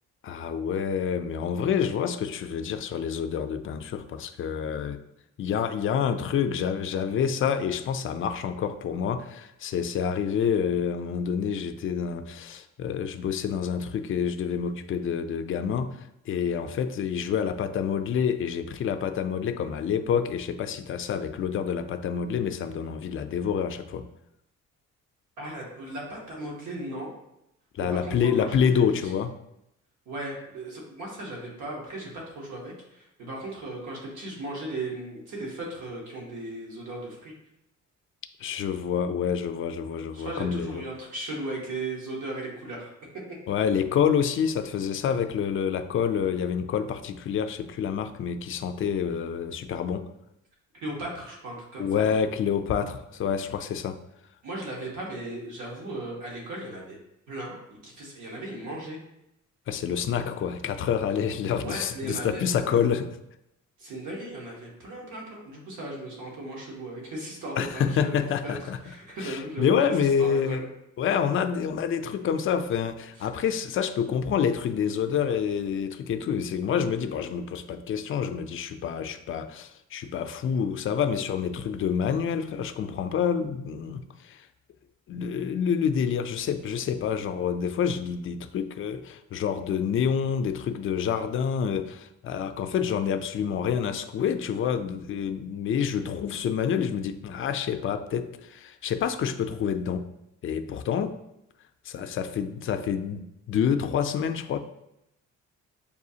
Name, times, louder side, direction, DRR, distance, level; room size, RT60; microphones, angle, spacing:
voice 1, 0.2-5.0 5.4-16.0 16.3-24.1 27.8-29.3 38.4-40.8 43.5-50.1 51.8-54.0 59.7-63.1 67.6-68.8 69.2-70.6 71.0-84.4 85.1-100.1 100.4-101.2 101.9-104.6, left 7 dB, 45° left, 9 dB, 0.4 m, -27 dB
voice 2, 25.4-27.1 27.8-29.1 30.1-37.3 40.1-43.4 50.8-52.1 54.4-57.0 57.3-59.0 61.6-62.9 63.8-68.5 68.8-69.9 70.2-70.7 73.2-73.3, right 1 dB, 75° right, -2 dB, 1.3 m, -37 dB
6.8 x 2.4 x 2.7 m, 0.82 s
cardioid pair, 90°, 30 cm